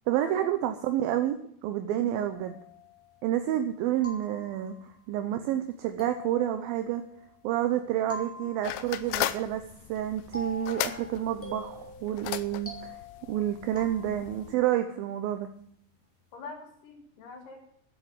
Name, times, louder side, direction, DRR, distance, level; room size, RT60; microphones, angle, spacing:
voice 1, 0.1-1.4 1.6-2.6 3.2-4.8 5.1-7.0 7.4-9.6 9.9-13.0 13.3-15.5, right 12 dB, 75° right, 8 dB, 2.3 m, -29 dB
voice 2, 1.9-2.3 16.3-17.6, left 4 dB, 60° left, 2 dB, 3.6 m, -44 dB
sound 1, 2.3-3.4 4.0-5.0 6.0-7.5 8.1-9.3 10.3-14.6, left 1 dB, 5° left, 1.7 m, -45 dB
sound 2, 8.6-14.6, left 14 dB, 80° left, 2.4 m, -37 dB
10.0 x 7.9 x 8.0 m, 0.67 s
omnidirectional pair, 4.6 m